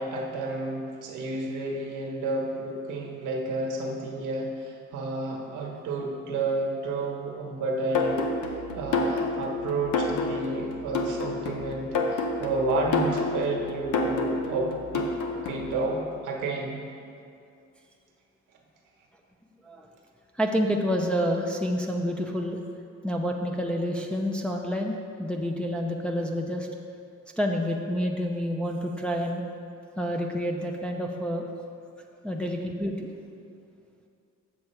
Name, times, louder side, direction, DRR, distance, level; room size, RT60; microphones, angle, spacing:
voice 1, 0.0-8.3 8.7-15.1 15.4-16.8, right 2 dB, 85° right, 0 dB, 1.3 m, -31 dB
sound 1, 7.9-15.8, left 3 dB, 85° left, 0.9 m, -29 dB
voice 2, 20.4-22.6 23.0-26.7 27.4-29.4 30.0-31.4 32.2-33.1, equal, 5° left, 0 dB, 0.6 m, -28 dB
7.3 x 6.5 x 4.5 m, 2.5 s
cardioid pair, 90°, 30 cm